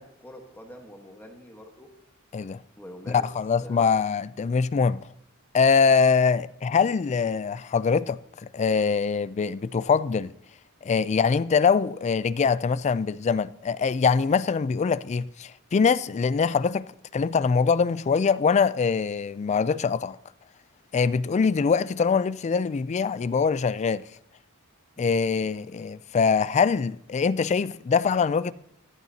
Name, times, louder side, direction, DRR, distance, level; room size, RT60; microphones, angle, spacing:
voice 1, 0.0-1.9 2.7-3.3 3.6-3.9 25.0-25.1, equal, 10° left, 1.3 m, -45 dB
voice 2, 3.1-5.0 5.5-10.3 10.8-16.9 17.1-20.2 20.9-24.0 25.0-28.5, left 5 dB, 30° left, 0.3 m, -23 dB
14.5 x 13.5 x 2.8 m
head